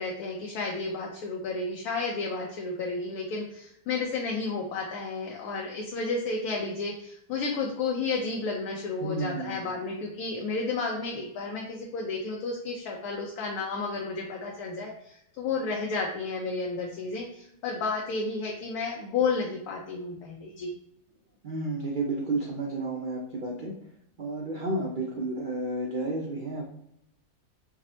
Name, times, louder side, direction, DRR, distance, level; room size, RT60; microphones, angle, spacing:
voice 1, 0.0-20.7, left 4 dB, 75° left, -1 dB, 1.1 m, -32 dB
voice 2, 9.0-9.7 21.4-23.7 24.2-26.7, right 2 dB, 75° right, -2 dB, 0.4 m, -31 dB
5.0 x 2.0 x 2.7 m, 0.74 s
omnidirectional pair, 1.6 m